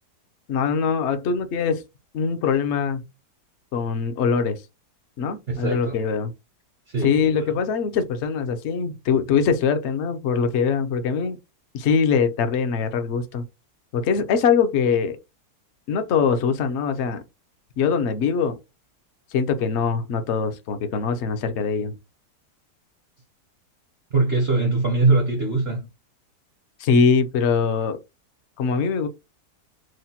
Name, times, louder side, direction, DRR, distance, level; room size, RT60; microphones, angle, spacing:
voice 1, 0.5-1.8 2.1-3.1 3.7-4.6 5.2-6.3 7.0-11.4 11.7-13.4 13.9-15.2 15.9-17.2 17.8-18.6 19.3-22.0 26.8-28.0 28.6-29.1, left 6 dB, 65° left, 0.7 m, -22 dB
voice 2, 5.5-6.0 6.9-7.6 24.1-25.9, right 3 dB, 55° right, 0.7 m, -22 dB
6.3 x 2.1 x 2.8 m
omnidirectional pair, 1.8 m